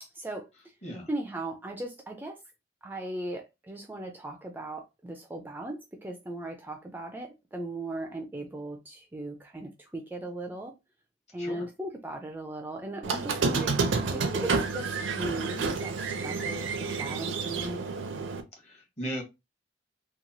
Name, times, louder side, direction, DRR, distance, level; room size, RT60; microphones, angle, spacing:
voice 1, 0.0-0.5 1.1-2.4 2.8-10.7 11.3-14.9 15.1-17.8, right 1 dB, 10° right, 0.3 m, -38 dB
Squeak, 13.0-18.4, right 4 dB, 75° right, 0.5 m, -29 dB
voice 2, 18.6-19.2, equal, 35° left, 1.1 m, -36 dB
2.9 x 2.3 x 2.6 m
head